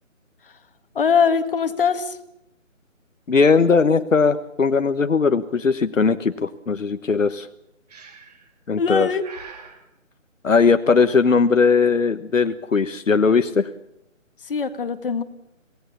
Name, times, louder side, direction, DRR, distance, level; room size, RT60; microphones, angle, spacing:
voice 1, 1.0-2.2 8.8-9.2 14.5-15.2, left 6 dB, 45° left, 10 dB, 1.8 m, -21 dB
voice 2, 3.3-7.5 8.7-9.1 10.4-13.7, left 5 dB, 70° left, 9 dB, 1.3 m, -19 dB
Breathing, 7.9-8.5 9.2-9.8, right 5 dB, 30° right, 3.3 m, -42 dB
26.0 x 17.5 x 6.9 m, 0.84 s
figure-of-eight pair, 155°, 39 cm